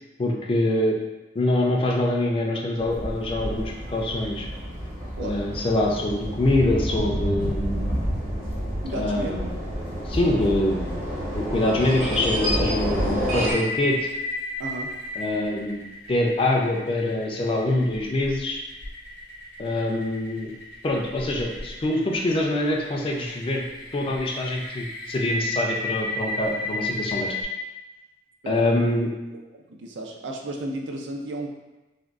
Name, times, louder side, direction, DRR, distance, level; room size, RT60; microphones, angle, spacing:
voice 1, 0.2-1.0 1.3-4.5 5.2-7.9 8.9-9.5 10.1-11.0 11.3-14.1 15.2-15.8 16.1-18.6 19.6-20.5 20.8-23.6 23.9-27.3 28.5-29.1, left 1 dB, 30° left, 0 dB, 0.3 m, -24 dB
sound 1, 2.8-13.5, equal, 45° right, 0.9 m, -29 dB
voice 2, 8.8-9.4 14.6-14.9 28.4-29.0 29.5-31.5, right 1 dB, 80° right, 1 dB, 0.4 m, -33 dB
sound 2, 13.4-27.4, left 2 dB, 80° left, 0.7 m, -33 dB
3.5 x 2.2 x 2.3 m, 1.1 s
head